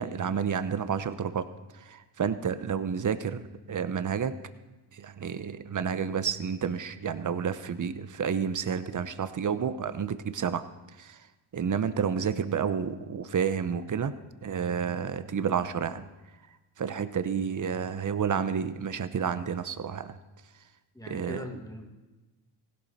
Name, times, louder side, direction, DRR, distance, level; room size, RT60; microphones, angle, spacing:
voice 1, 0.0-1.4 1.7-4.3 4.9-10.6 11.0-11.2 11.5-14.1 14.4-16.1 16.8-20.2 21.1-21.4, right 7 dB, 40° right, 12 dB, 0.9 m, -30 dB
voice 2, 20.9-22.0, left 1 dB, 5° left, 2 dB, 2.2 m, -41 dB
16.0 x 11.5 x 4.2 m, 1.1 s
cardioid pair, 60°, 47 cm